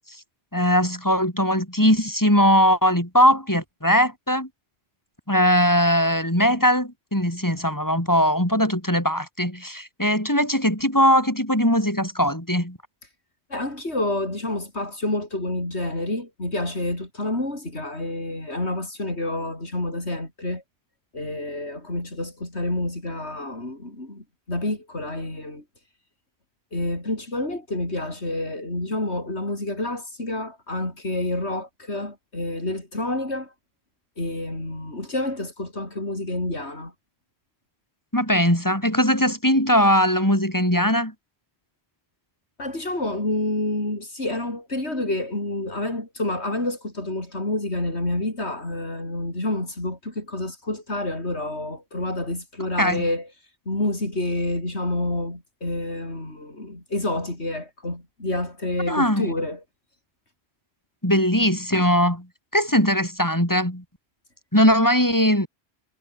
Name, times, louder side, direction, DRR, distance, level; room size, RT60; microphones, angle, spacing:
voice 1, 0.5-4.5 5.3-12.8 38.1-41.1 52.8-53.0 58.9-59.3 61.0-62.3 62.5-63.8 64.5-65.5, equal, 15° left, 5.6 m, -20 dB
voice 2, 13.5-20.6 21.1-25.6 26.7-33.5 34.2-36.9 42.6-53.3 53.7-59.6, left 1 dB, 85° left, 6.4 m, -28 dB
omnidirectional pair, 1.1 m